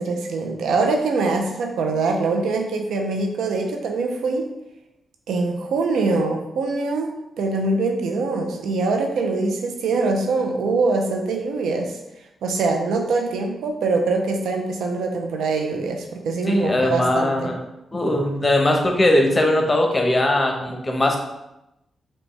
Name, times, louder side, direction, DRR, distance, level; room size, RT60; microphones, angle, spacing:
voice 1, 0.0-4.5 5.3-7.1 7.4-11.9 12.4-17.5, right 3 dB, 80° right, 3 dB, 0.5 m, -23 dB
voice 2, 16.5-17.6 17.9-21.2, left 1 dB, 30° left, 2 dB, 0.9 m, -20 dB
5.0 x 2.2 x 3.2 m, 0.91 s
supercardioid pair, 45°, 0 cm